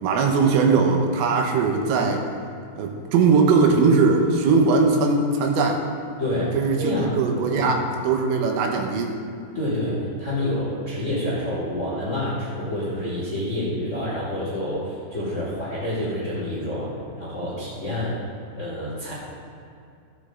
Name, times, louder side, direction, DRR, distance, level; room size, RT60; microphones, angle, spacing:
voice 1, 0.0-2.3 2.8-5.8 6.5-7.8 8.1-9.2, right 4 dB, 80° right, 3 dB, 3.6 m, -20 dB
voice 2, 6.2-7.2 7.5-7.7 9.5-18.2 18.5-19.1, left 1 dB, 20° left, -7 dB, 2.0 m, -28 dB
15.5 x 9.3 x 3.7 m, 2.4 s
omnidirectional pair, 6.0 m